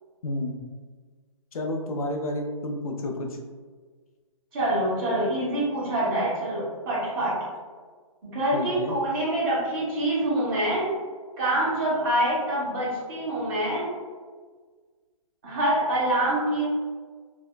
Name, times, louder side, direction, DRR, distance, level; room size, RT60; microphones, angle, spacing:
voice 1, 0.2-0.5 1.5-3.4 8.5-9.0, left 1 dB, 75° left, 2 dB, 0.5 m, -30 dB
voice 2, 4.5-7.3 8.3-10.9 11.4-13.9 15.4-16.7, right 1 dB, 35° right, -8 dB, 1.5 m, -25 dB
3.4 x 2.1 x 2.2 m, 1.5 s
hypercardioid pair, 145°, 18 cm